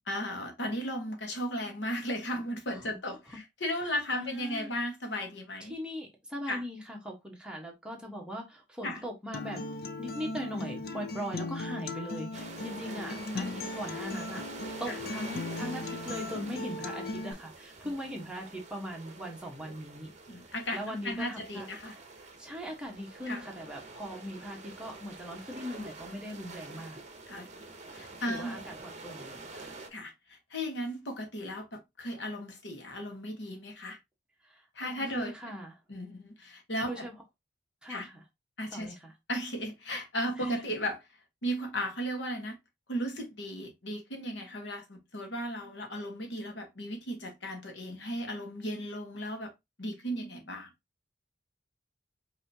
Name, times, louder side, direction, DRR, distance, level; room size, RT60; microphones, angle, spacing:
voice 1, 0.1-5.7 6.5-6.6 8.8-9.0 10.3-11.0 12.9-13.5 14.9-15.0 17.8-17.9 20.3-21.9 23.3-23.4 26.7-26.8 27.3-27.5 27.9-28.6 29.9-34.0 34.7-35.3 35.9-37.1 37.9-38.1 38.6-38.9 39.3-41.0 41.4-42.6 42.9-49.5 49.8-50.7, equal, 75° left, 1.3 m, -36 dB
voice 2, 3.8-4.7 5.6-9.6 10.0-20.1 20.7-21.7 22.4-27.0 28.3-29.7 34.4-35.7 36.8-37.1 37.8-38.2 38.7-39.1 40.4-40.6, equal, 5° right, 1.2 m, -40 dB
Acoustic guitar, 9.3-17.3, left 3 dB, 55° left, 0.5 m, -38 dB
sound 1, 12.3-29.9, right 3 dB, 40° right, 0.8 m, -46 dB
5.4 x 2.8 x 2.8 m
head